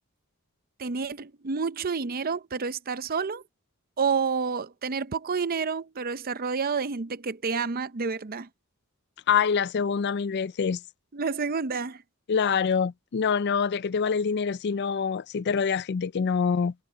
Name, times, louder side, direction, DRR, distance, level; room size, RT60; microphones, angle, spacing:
voice 1, 0.8-3.4 4.0-8.5 11.1-12.0, right 5 dB, 45° right, 0.6 m, -29 dB
voice 2, 9.3-10.8 12.3-16.7, left 6 dB, 50° left, 0.4 m, -25 dB
head